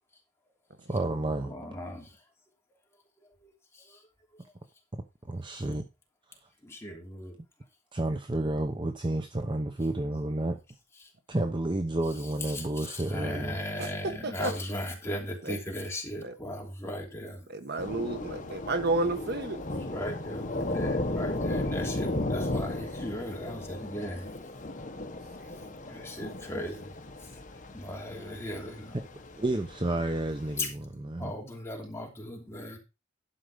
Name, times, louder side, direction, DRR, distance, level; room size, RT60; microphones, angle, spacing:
voice 1, 0.9-1.5 4.9-5.9 7.9-10.6 11.3-13.6 29.4-31.3, right 1 dB, 25° right, 0.8 m, -31 dB
voice 2, 1.4-2.2 3.2-4.1 4.3-4.4 6.6-7.4 11.0-11.1 12.4-17.5 19.7-24.3 25.9-29.0 30.6-30.7 31.2-32.8, left 1 dB, 15° left, 3.0 m, -38 dB
voice 3, 13.8-14.5 15.4-15.6 16.2-16.3 17.5-19.6, right 2 dB, 55° right, 1.3 m, -31 dB
Thunder / Rain, 17.8-30.6, left 2 dB, 40° left, 1.5 m, -35 dB
11.5 x 5.7 x 5.1 m
head